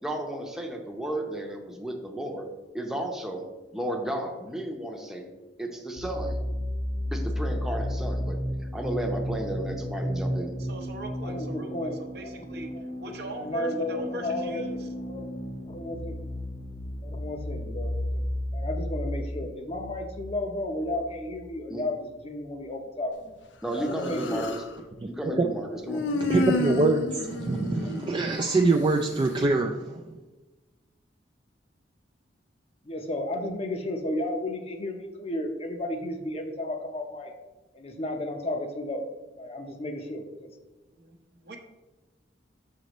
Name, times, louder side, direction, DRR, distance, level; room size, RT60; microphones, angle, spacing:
voice 1, 0.0-2.5 2.7-3.4 3.7-5.3 5.6-6.4 7.1-8.4 8.7-10.6 21.7-21.8 23.6-24.6 25.0-26.1, right 1 dB, 5° right, 1 dB, 0.7 m, -33 dB
sound 1, 6.0-21.5, equal, 65° left, 1.5 m, -33 dB
voice 2, 10.6-12.7 13.0-14.9 33.8-34.0 40.9-41.6, right 1 dB, 65° right, 4 dB, 0.8 m, -41 dB
voice 3, 11.2-12.4 12.7-12.8 13.3-15.3 15.7-16.1 17.0-18.3 18.5-23.3 23.7-24.5 32.8-37.3 37.7-39.0 39.4-40.5, left 1 dB, 35° left, 4 dB, 0.7 m, -33 dB
Human voice, 23.7-24.7 25.9-28.6, left 2 dB, 90° left, 0.5 m, -30 dB
voice 4, 26.1-30.0, right 3 dB, 25° right, 3 dB, 0.3 m, -24 dB
6.4 x 5.2 x 3.0 m, 1.1 s
head